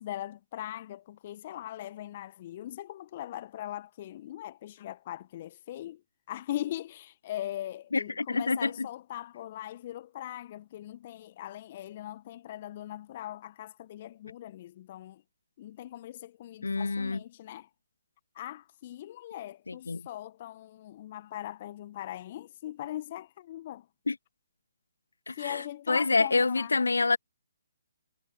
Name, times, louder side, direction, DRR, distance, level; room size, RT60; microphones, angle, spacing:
voice 1, 0.0-6.0 6.3-15.2 15.6-17.7 18.3-23.9 25.3-26.7, left 13 dB, 35° left, 1.2 m, -40 dB
voice 2, 7.9-8.9 16.6-17.2 19.7-20.1 24.1-24.2 25.3-27.2, left 3 dB, 75° left, 2.1 m, -27 dB
figure-of-eight pair, 135°, 0 cm